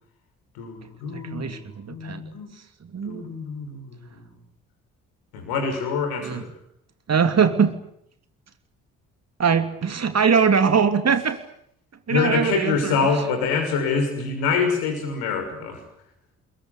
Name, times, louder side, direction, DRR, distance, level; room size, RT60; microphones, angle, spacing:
voice 1, 0.5-1.6 1.9-2.5 3.0-4.2 5.3-6.5 12.1-15.8, left 5 dB, 70° left, 7 dB, 6.3 m, -25 dB
voice 2, 1.1-2.2 2.9-3.2 6.2-6.4 7.1-7.7 9.4-11.4 12.1-13.0, right 6 dB, 40° right, 9 dB, 3.0 m, -21 dB
27.0 x 22.0 x 8.3 m, 0.73 s
figure-of-eight pair, 45°, 40 cm